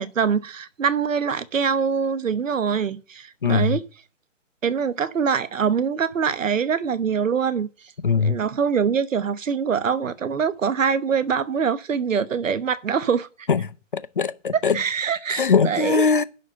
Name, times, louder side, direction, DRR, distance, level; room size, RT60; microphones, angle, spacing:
voice 1, 0.0-3.8 4.6-7.7 8.2-13.3 14.7-16.1, right 6 dB, 80° right, 1.1 m, -24 dB
voice 2, 3.4-3.8 8.0-8.4 13.5-14.8 15.3-16.2, left 5 dB, 45° left, 0.5 m, -21 dB
11.0 x 4.2 x 7.6 m
hypercardioid pair, 175°, 38 cm